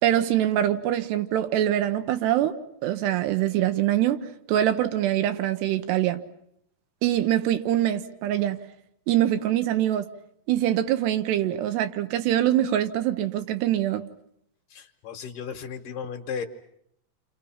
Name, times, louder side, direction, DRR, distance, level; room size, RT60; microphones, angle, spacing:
voice 1, 0.0-2.6 2.8-6.2 7.0-8.6 9.1-10.1 10.5-14.1, right 12 dB, 90° right, 3.3 m, -24 dB
voice 2, 14.7-16.5, left 6 dB, 65° left, 2.3 m, -35 dB
29.5 x 26.5 x 5.8 m
omnidirectional pair, 4.7 m